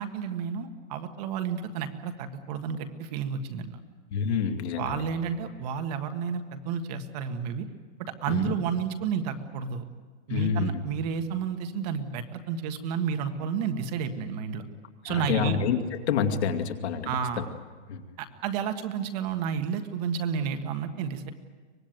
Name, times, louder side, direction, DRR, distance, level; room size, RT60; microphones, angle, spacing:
voice 1, 0.0-3.8 4.8-7.7 8.0-9.8 10.3-14.6 15.0-15.6 17.0-17.5 18.2-21.3, right 7 dB, 35° right, 7 dB, 1.6 m, -31 dB
voice 2, 4.1-5.0 8.3-8.5 10.3-10.8 15.1-17.1 17.4-17.5 17.9-18.0, left 7 dB, 65° left, 5 dB, 2.5 m, -28 dB
24.5 x 20.0 x 9.2 m, 1.5 s
supercardioid pair, 170°, 36 cm